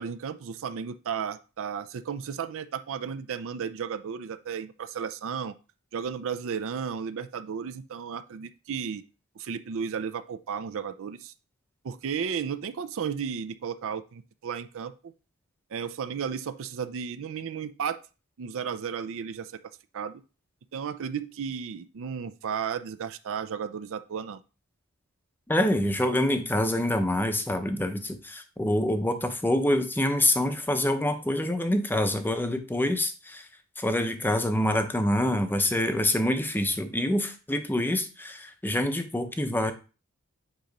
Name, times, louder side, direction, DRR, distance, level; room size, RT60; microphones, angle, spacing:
voice 1, 0.0-5.5 5.9-9.0 9.4-11.3 11.8-15.1 15.7-18.0 18.4-19.5 19.9-20.2 20.7-24.4, right 7 dB, 65° right, 11 dB, 0.4 m, -34 dB
voice 2, 25.5-33.5 33.8-39.7, left 1 dB, 10° left, 7 dB, 0.6 m, -26 dB
8.0 x 3.0 x 5.1 m, 0.33 s
head